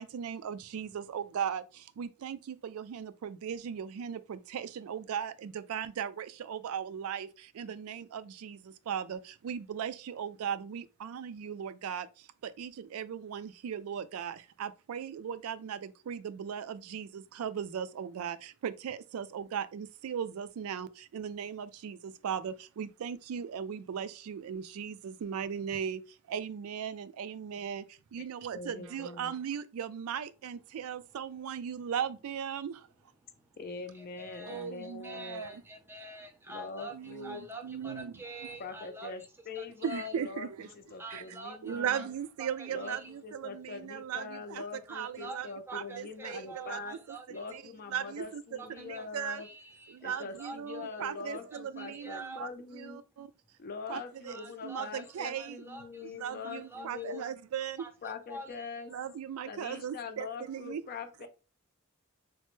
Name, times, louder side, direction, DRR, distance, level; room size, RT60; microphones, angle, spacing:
voice 1, 0.0-32.9 34.4-35.6 36.9-38.1 39.8-40.7 41.1-41.2 41.6-47.6 47.9-48.4 48.9-49.4 49.9-53.3 53.9-54.4 54.6-55.6 56.0-57.8 58.9-60.8 61.2-61.3, right 8 dB, 80° right, 0.3 m, -38 dB
voice 2, 28.5-29.3 33.6-35.4 36.5-37.4 38.6-40.5 40.9-42.1 42.7-43.0 43.2-46.9 47.3-49.5 50.0-53.0 53.6-57.3 58.0-58.9 59.5-61.3, left 5 dB, 45° left, 0.4 m, -43 dB
voice 3, 33.9-40.0 41.0-42.1 42.4-43.1 44.9-47.6 48.6-49.1 49.4-51.1 51.5-52.4 54.3-57.2 57.8-58.8, right 2 dB, 10° right, 0.6 m, -47 dB
3.2 x 2.0 x 3.1 m
head